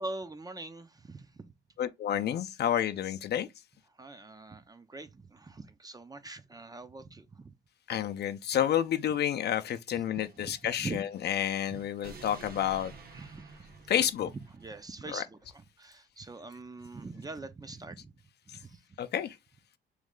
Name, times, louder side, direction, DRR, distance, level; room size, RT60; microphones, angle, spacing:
voice 1, 0.0-1.5 3.9-7.5 9.9-10.0 10.4-11.0 11.7-11.8 13.1-13.8 14.2-18.1 18.5-18.8, right 3 dB, 20° right, 0.5 m, -43 dB
voice 2, 1.8-3.5 7.9-12.9 13.9-14.3 15.1-15.2 18.5-18.6 19.0-19.4, left 10 dB, 55° left, 0.5 m, -30 dB
sound 1, 10.1-14.8, right 4 dB, 50° right, 0.8 m, -51 dB
3.2 x 3.1 x 3.6 m
cardioid pair, 90°, 20 cm